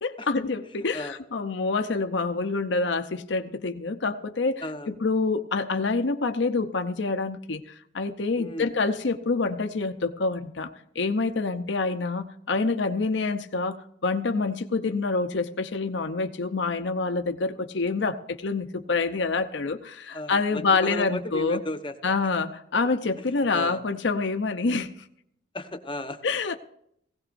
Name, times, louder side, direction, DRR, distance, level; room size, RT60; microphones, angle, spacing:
voice 1, 0.0-4.6 5.0-21.6 22.0-24.9 26.2-26.6, left 3 dB, 65° left, 7 dB, 0.7 m, -27 dB
voice 2, 8.4-8.7 20.1-22.3 23.5-23.8 25.5-26.2, left 1 dB, 25° left, 7 dB, 1.0 m, -34 dB
18.5 x 16.5 x 2.6 m, 0.71 s
head